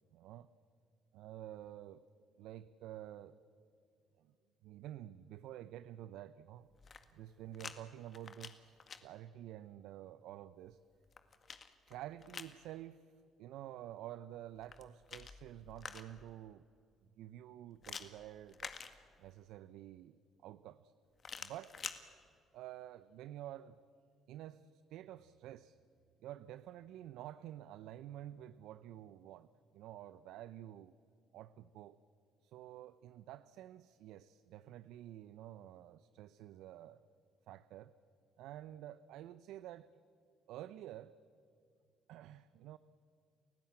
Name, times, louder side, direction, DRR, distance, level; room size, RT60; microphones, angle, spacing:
voice 1, 0.1-0.5 1.1-3.7 4.2-4.3 4.6-6.7 7.1-10.8 11.9-13.1 13.4-16.7 17.2-18.7 19.2-20.9 21.4-21.8 22.5-23.8 24.3-25.8 26.2-30.9 31.3-32.0 32.4-37.0 37.5-38.0 38.4-39.9 40.5-41.2 42.1-42.8, right 12 dB, 75° right, 15 dB, 0.5 m, -50 dB
sound 1, 6.7-7.8 8.1-9.0 10.7-12.6 14.6-16.3 17.8-19.4 21.2-22.0, left 6 dB, 45° left, 1.9 m, -49 dB
30.0 x 15.5 x 8.7 m, 2.5 s
hypercardioid pair, 60°, 0 cm